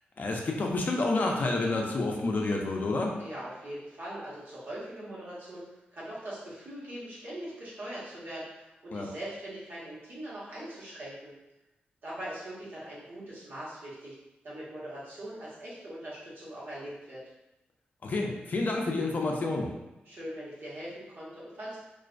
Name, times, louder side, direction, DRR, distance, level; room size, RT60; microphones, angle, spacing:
voice 1, 0.2-3.2 8.9-9.1 18.0-19.7, left 2 dB, 55° left, 1 dB, 0.4 m, -29 dB
voice 2, 3.2-5.7 5.9-11.3 12.0-14.2 14.4-17.2 20.0-21.8, right 1 dB, 70° right, -8 dB, 1.0 m, -41 dB
2.4 x 2.1 x 2.4 m, 0.96 s
cardioid pair, 75°, 4 cm